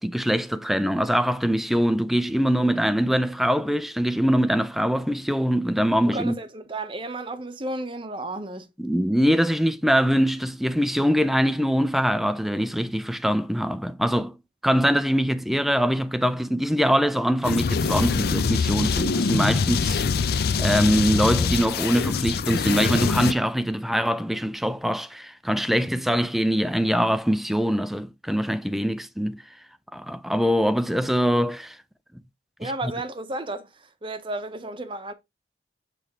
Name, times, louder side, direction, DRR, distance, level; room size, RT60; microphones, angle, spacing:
voice 1, 0.0-6.4 8.8-14.3 14.6-20.0 20.6-29.4 29.9-31.8 32.6-32.9, equal, ahead, 0.4 m, -23 dB
voice 2, 6.1-8.7 32.6-35.1, right 2 dB, 30° right, 0.7 m, -33 dB
sound 1, 17.4-23.3, left 5 dB, 60° left, 0.5 m, -24 dB
8.1 x 3.3 x 3.6 m
head